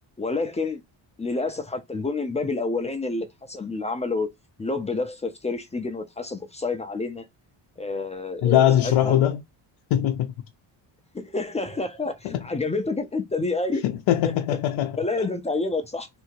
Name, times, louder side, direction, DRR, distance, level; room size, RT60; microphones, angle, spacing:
voice 1, 0.2-0.8 1.2-4.3 4.6-7.2 7.8-9.2 11.1-13.8 15.0-16.1, left 3 dB, 15° left, 0.4 m, -28 dB
voice 2, 8.4-9.4 9.9-10.3 12.2-12.5 13.8-15.3, left 11 dB, 90° left, 0.6 m, -22 dB
3.4 x 2.8 x 4.5 m
cardioid pair, 175°, 47 cm